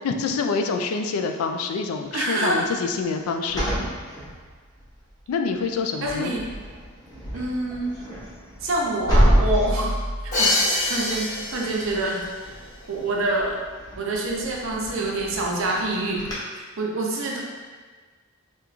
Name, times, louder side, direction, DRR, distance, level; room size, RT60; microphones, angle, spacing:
voice 1, 0.0-3.7 5.3-6.3 9.8-9.9, left 4 dB, 75° left, 5 dB, 0.3 m, -26 dB
voice 2, 2.1-2.7 6.0-6.5 7.3-8.0 8.6-9.9 10.2-12.2 12.9-13.5 14.0-16.2 16.8-17.4, right 2 dB, 60° right, -1 dB, 0.6 m, -26 dB
sound 1, 3.4-5.0 5.5-5.8 6.0-16.3, equal, 20° left, 0.7 m, -28 dB
Crash cymbal, 10.3-12.2, left 2 dB, 35° left, 1.0 m, -24 dB
4.4 x 2.3 x 2.4 m, 1.5 s
head